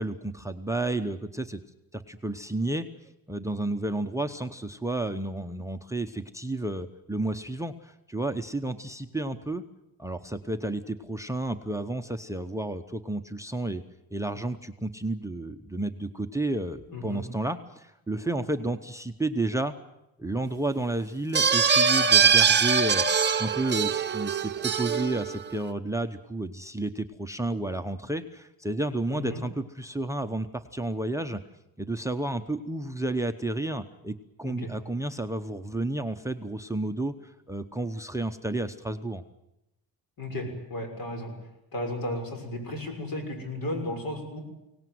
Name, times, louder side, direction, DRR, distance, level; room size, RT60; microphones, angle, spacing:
voice 1, 0.0-1.6 1.9-2.9 3.3-9.6 10.0-13.8 14.1-19.7 20.2-23.0 23.4-31.4 31.8-39.2, right 2 dB, 10° right, 11 dB, 0.8 m, -31 dB
voice 2, 16.9-17.2 29.1-29.4 34.4-34.7 40.2-41.3 41.7-44.4, left 1 dB, 65° left, 4 dB, 6.4 m, -34 dB
sound 1, 21.3-25.5, right 6 dB, 30° right, 1.1 m, -22 dB
23.5 x 18.0 x 9.4 m, 0.90 s
cardioid pair, 145°, 38 cm